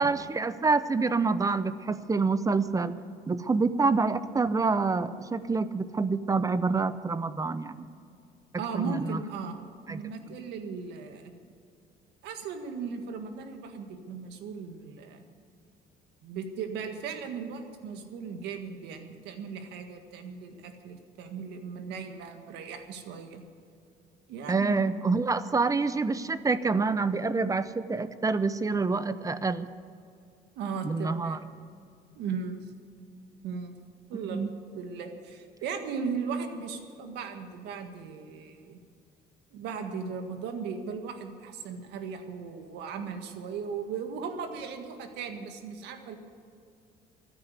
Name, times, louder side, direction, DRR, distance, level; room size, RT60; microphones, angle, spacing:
voice 1, 0.0-3.0 3.3-7.9 8.5-9.2 9.9-10.0 24.5-29.7 30.8-31.4 34.2-34.5, right 4 dB, 20° right, 14 dB, 0.7 m, -27 dB
voice 2, 8.6-9.6 9.9-11.3 12.2-15.2 16.2-23.4 24.3-24.8 30.5-31.4 32.1-32.6 33.4-33.8 34.1-34.4 34.7-38.8 39.5-46.2, right 5 dB, 85° right, 6 dB, 1.7 m, -37 dB
14.5 x 9.8 x 8.2 m, 2.4 s
cardioid pair, 110°, 17 cm